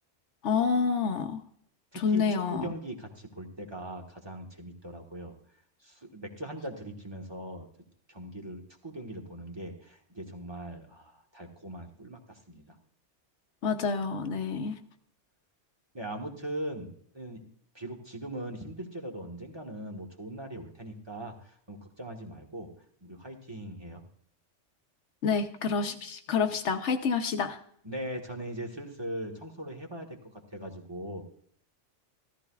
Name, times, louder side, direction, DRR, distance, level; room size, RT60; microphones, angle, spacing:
voice 1, 0.4-1.4 1.9-2.7 13.6-14.8 25.2-27.6, left 5 dB, 75° left, 7 dB, 1.0 m, -28 dB
voice 2, 1.9-5.3 5.8-7.7 8.1-12.8 15.9-17.5 17.7-22.7 23.0-24.0 27.8-31.2, right 1 dB, 20° right, 2 dB, 1.3 m, -40 dB
14.0 x 14.0 x 2.3 m, 0.63 s
omnidirectional pair, 1.2 m